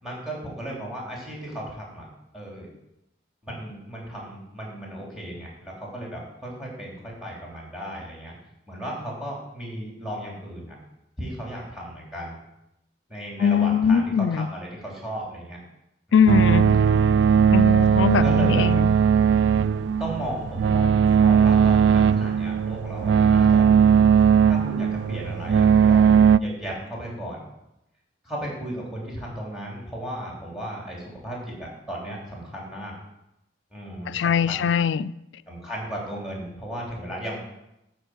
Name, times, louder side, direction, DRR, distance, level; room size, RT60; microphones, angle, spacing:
voice 1, 0.0-2.1 2.3-2.7 3.4-8.3 8.7-10.8 11.2-12.4 13.1-15.6 16.1-16.4 18.2-18.6 20.0-23.7 24.5-27.4 28.2-32.9 33.7-34.8 35.5-37.4, right 1 dB, 5° right, -3 dB, 3.3 m, -35 dB
voice 2, 13.4-14.5 16.1-16.8 17.5-18.9 34.1-35.1, left 7 dB, 85° left, 18 dB, 0.4 m, -21 dB
sound 1, 16.3-26.4, right 7 dB, 80° right, 0.3 m, -18 dB
12.5 x 4.6 x 7.9 m, 0.87 s
head